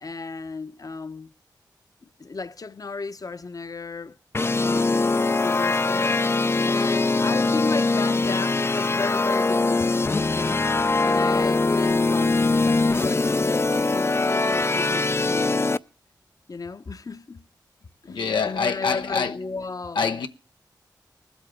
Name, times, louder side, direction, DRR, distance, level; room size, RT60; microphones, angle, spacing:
voice 1, 0.0-1.3 2.2-6.2 6.7-10.0 10.3-15.6 16.5-17.4 18.0-20.1, left 4 dB, 50° left, 0.9 m, -34 dB
sound 1, 4.3-15.8, left 3 dB, 35° left, 0.5 m, -22 dB
voice 2, 18.1-19.4 19.9-20.3, left 5 dB, 85° left, 0.8 m, -25 dB
20.0 x 8.2 x 3.7 m
cardioid pair, 50°, 8 cm